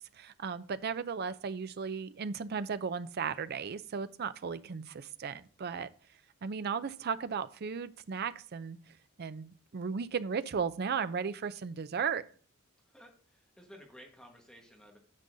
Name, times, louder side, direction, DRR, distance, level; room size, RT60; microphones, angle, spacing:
voice 1, 0.1-5.9 6.4-12.3, right 6 dB, 50° right, 0.4 m, -36 dB
voice 2, 12.8-15.0, equal, 5° left, 1.3 m, -55 dB
9.8 x 6.9 x 2.6 m
head